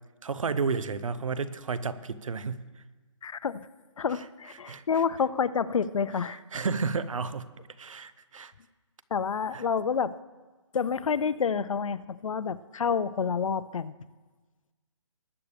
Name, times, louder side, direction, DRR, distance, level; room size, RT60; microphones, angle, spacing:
voice 1, 0.2-2.8 4.6-4.8 6.3-7.5 7.8-8.5 9.5-9.6, right 5 dB, 85° right, 15 dB, 0.8 m, -32 dB
voice 2, 3.2-3.7 4.0-6.4 9.1-10.2 10.7-13.9, left 6 dB, 85° left, 16 dB, 0.6 m, -28 dB
19.5 x 8.6 x 3.4 m, 1.3 s
hypercardioid pair, 175°, 17 cm